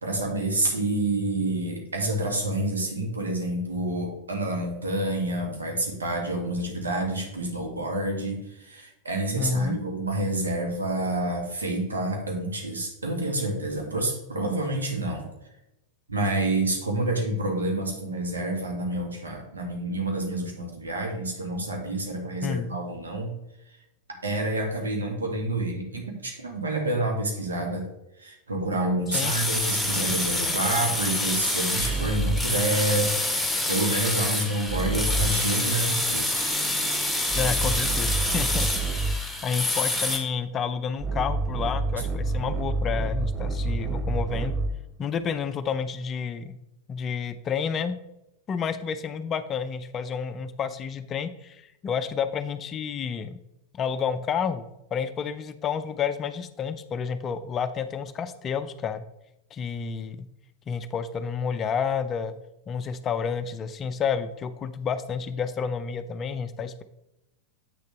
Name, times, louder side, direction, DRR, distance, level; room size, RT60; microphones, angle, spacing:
voice 1, 0.0-15.3 16.1-23.3 24.2-27.9 28.2-36.5, right 1 dB, 75° right, 1 dB, 1.9 m, -28 dB
voice 2, 9.4-9.8 22.4-22.7 29.1-29.3 37.3-39.0 39.4-44.6 45.0-46.6 46.9-48.0 48.5-53.4 53.7-54.7 54.9-59.0 59.5-60.3 60.7-62.3 62.7-66.8, left 6 dB, 25° left, 12 dB, 0.5 m, -30 dB
sound 1, 29.1-40.2, left 2 dB, ahead, 1.5 m, -27 dB
sound 2, 29.9-32.6 34.7-35.5 36.3-39.3 41.0-44.9, right 3 dB, 25° right, 0.7 m, -29 dB
8.4 x 6.6 x 3.2 m, 0.92 s
figure-of-eight pair, 90°, 0 cm